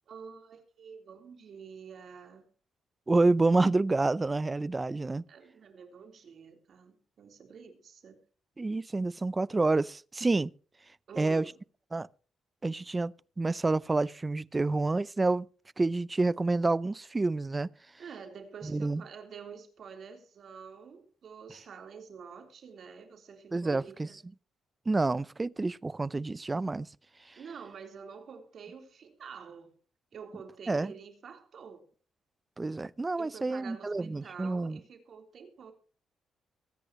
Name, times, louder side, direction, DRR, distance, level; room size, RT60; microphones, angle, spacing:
voice 1, 0.1-2.5 5.3-8.2 11.1-11.5 18.0-24.2 27.4-29.7 30.1-31.8 33.2-35.7, right 6 dB, 55° right, 3.8 m, -48 dB
voice 2, 3.1-5.2 8.6-10.5 11.2-11.5 11.9-12.1 12.6-15.5 15.8-17.7 18.6-19.0 23.5-24.1 24.9-26.9 27.3-27.4 30.7-30.9 32.6-34.8, right 3 dB, 20° right, 0.5 m, -28 dB
22.5 x 9.9 x 3.1 m
cardioid pair, 90°, 0 cm